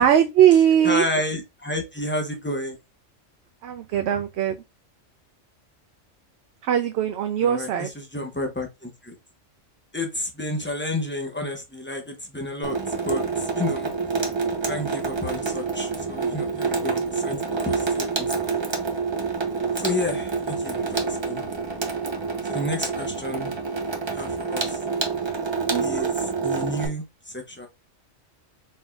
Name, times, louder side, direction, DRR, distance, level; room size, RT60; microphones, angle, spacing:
voice 1, 0.0-1.0 3.6-4.5 6.6-7.9 25.7-26.1, right 10 dB, 65° right, 0.8 m, -20 dB
voice 2, 0.8-2.8 7.4-9.1 9.9-12.8 13.0-13.9 14.6-18.5 19.8-21.4 22.4-23.5 24.1-24.8 25.8-27.7, left 1 dB, 10° left, 0.8 m, -31 dB
Water tap faucet / Sink (filling or washing), 12.6-26.9, right 4 dB, 30° right, 0.6 m, -27 dB
4.3 x 3.6 x 2.3 m
omnidirectional pair, 1.3 m